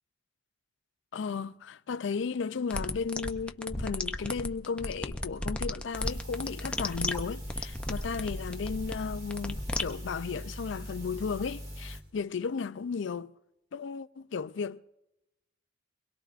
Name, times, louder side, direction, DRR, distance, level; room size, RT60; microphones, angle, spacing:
voice 1, 1.1-13.3 13.7-14.8, left 5 dB, 80° left, 0.4 m, -35 dB
sound 1, 2.7-9.8, left 1 dB, 5° left, 0.5 m, -34 dB
sound 2, 5.9-12.0, equal, 35° right, 2.2 m, -41 dB
23.5 x 21.5 x 2.5 m
head